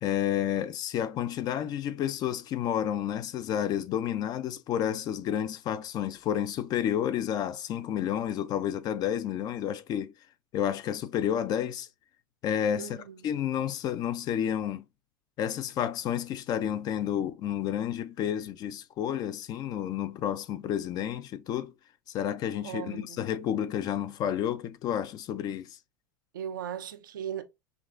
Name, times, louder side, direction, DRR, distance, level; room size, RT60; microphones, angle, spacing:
voice 1, 0.0-10.1 10.5-11.9 12.4-13.0 13.2-14.8 15.4-21.7 22.1-25.8, left 10 dB, 40° left, 0.5 m, -30 dB
voice 2, 12.8-13.3 22.6-23.2 26.3-27.4, right 9 dB, 80° right, 0.6 m, -38 dB
5.7 x 2.4 x 2.4 m
hypercardioid pair, 95°, 11 cm